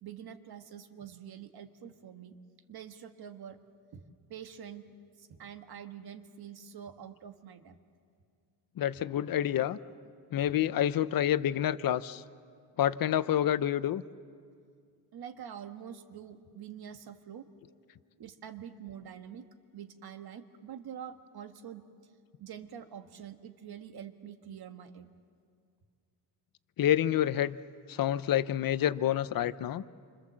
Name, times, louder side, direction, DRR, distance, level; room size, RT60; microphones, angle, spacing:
voice 1, 0.0-2.4 2.7-3.6 3.9-4.0 4.3-4.9 5.2-7.7 15.1-17.5 18.2-19.5 19.7-21.8 22.4-25.1, right 9 dB, 55° right, 8 dB, 1.6 m, -46 dB
voice 2, 8.8-9.8 10.3-12.2 12.8-14.0 26.8-27.6 27.9-29.8, left 11 dB, 50° left, 15 dB, 0.7 m, -28 dB
28.5 x 25.0 x 7.5 m, 2.2 s
cardioid pair, 135°, 44 cm